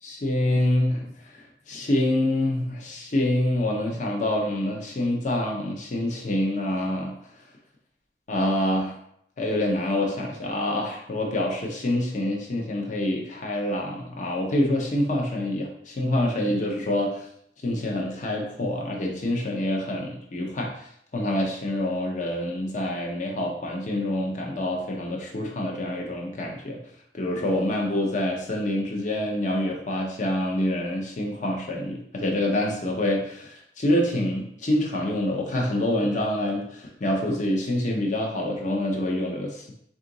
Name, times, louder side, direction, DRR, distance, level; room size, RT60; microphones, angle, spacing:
voice 1, 0.0-1.1 1.3-7.1 8.3-9.0 9.4-17.3 17.6-20.7 21.1-26.8 27.1-39.7, left 1 dB, 45° left, 0 dB, 0.7 m, -26 dB
3.8 x 2.4 x 3.8 m, 0.70 s
head